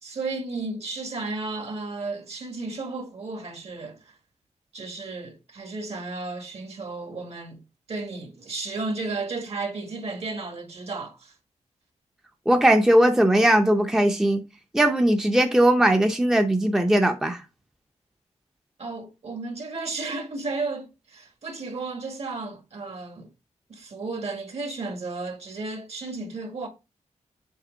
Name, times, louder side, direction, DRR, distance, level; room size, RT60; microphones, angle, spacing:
voice 1, 0.0-4.1 4.7-7.6 7.9-11.3 18.8-23.3 23.7-26.7, right 3 dB, 55° right, 1.7 m, -33 dB
voice 2, 12.5-14.4 14.7-17.4, right 1 dB, 5° right, 0.6 m, -19 dB
7.3 x 3.2 x 5.1 m
wide cardioid pair, 140°, 12 cm